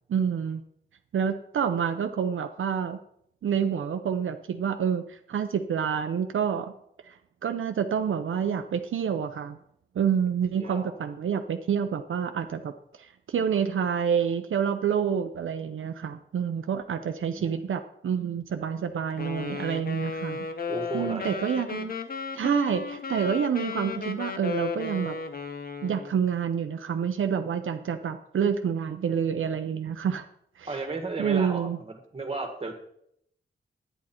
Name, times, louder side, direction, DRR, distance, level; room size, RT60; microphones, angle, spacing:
voice 1, 0.1-0.6 1.1-3.0 3.4-6.7 7.1-9.6 9.9-12.7 13.0-20.5 20.9-21.9 22.3-25.2 25.8-30.3 30.6-30.8 31.2-31.8, right 7 dB, 80° right, 7 dB, 0.6 m, -28 dB
voice 2, 10.5-10.9 17.0-17.6 20.7-21.4 30.7-32.7, right 3 dB, 30° right, 4 dB, 1.7 m, -35 dB
Wind instrument woodwind instrument, 19.2-26.1, left 5 dB, 45° left, 0.9 m, -34 dB
11.0 x 9.0 x 4.4 m, 0.71 s
wide cardioid pair, 175°, 21 cm